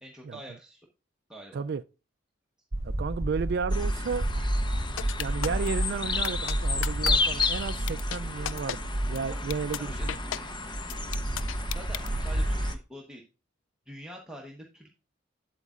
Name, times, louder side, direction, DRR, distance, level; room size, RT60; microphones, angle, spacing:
voice 1, 0.0-0.8 1.3-1.6 9.3-9.5 9.7-10.1 11.3-13.2 13.9-14.9, equal, 5° right, 1.1 m, -46 dB
sound 1, 2.7-12.7, right 1 dB, 35° right, 0.7 m, -31 dB
voice 2, 2.8-4.3 5.2-10.2, right 5 dB, 60° right, 0.3 m, -33 dB
sound 2, 3.7-12.7, left 4 dB, 25° left, 0.8 m, -34 dB
sound 3, 5.0-5.7 6.2-6.5 6.8-7.1 7.4-7.5 7.9-8.2 8.5-8.8 9.2-9.3 9.5-9.8 10.1-10.4 10.9-12.1, left 11 dB, 85° left, 0.3 m, -33 dB
8.1 x 8.1 x 2.4 m
head